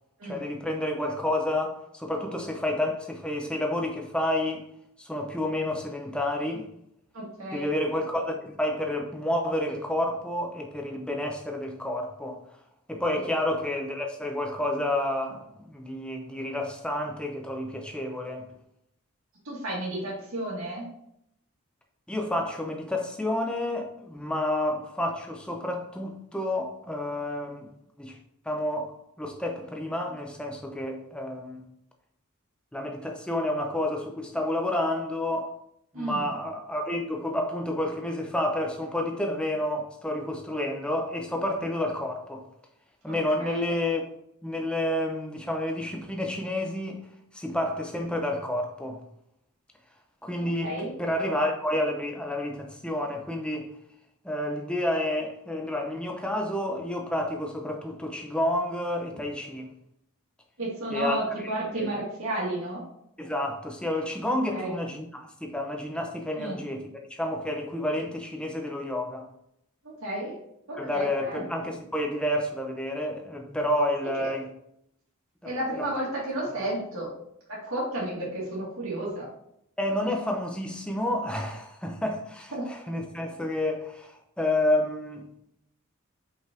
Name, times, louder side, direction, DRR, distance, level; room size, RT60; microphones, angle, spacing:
voice 1, 0.3-4.6 5.0-6.7 7.5-12.4 12.9-18.5 22.1-27.7 28.0-28.2 28.5-28.9 29.2-31.6 32.7-35.5 35.9-42.4 43.0-44.1 44.4-47.0 47.3-49.0 50.2-53.7 54.2-59.7 60.9-61.2 61.4-61.9 63.2-69.3 70.8-74.5 75.4-75.5 75.8-75.9 79.8-85.3, left 1 dB, 5° left, 0.8 m, -30 dB
voice 2, 7.1-7.7 13.1-13.2 19.4-20.9 35.9-36.3 43.1-43.6 50.6-50.9 60.6-62.8 64.5-64.7 66.4-66.6 70.0-70.3 70.7-71.4 74.2-74.3 75.4-77.1 77.5-79.3 82.5-82.6, right 1 dB, 70° right, 2.2 m, -32 dB
5.6 x 5.4 x 3.8 m
head